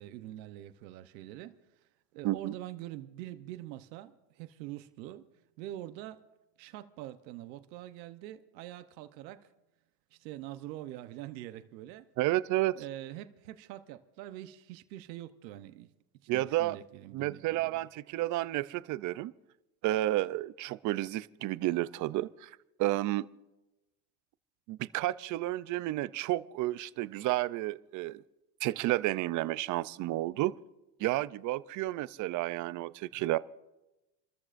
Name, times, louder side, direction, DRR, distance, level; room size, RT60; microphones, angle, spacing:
voice 1, 0.0-1.6 2.1-5.3 5.6-6.2 6.6-9.5 10.1-12.1 12.7-15.9 16.2-17.8, right 14 dB, 90° right, 1.0 m, -44 dB
voice 2, 12.2-12.8 16.3-16.8 17.1-19.3 19.8-22.5 22.8-23.3 24.7-28.2 28.6-30.6 31.0-33.4, right 16 dB, 40° right, 0.5 m, -31 dB
29.5 x 13.5 x 2.5 m
supercardioid pair, 135°, 49 cm